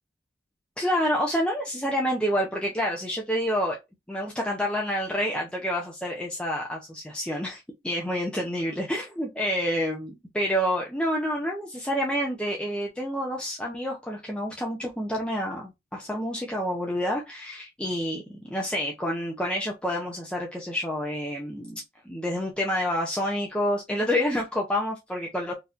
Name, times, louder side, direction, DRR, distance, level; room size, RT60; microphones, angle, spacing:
voice 1, 0.8-3.8 4.1-25.5, equal, 5° left, 0.6 m, -28 dB
4.2 x 2.7 x 2.4 m
head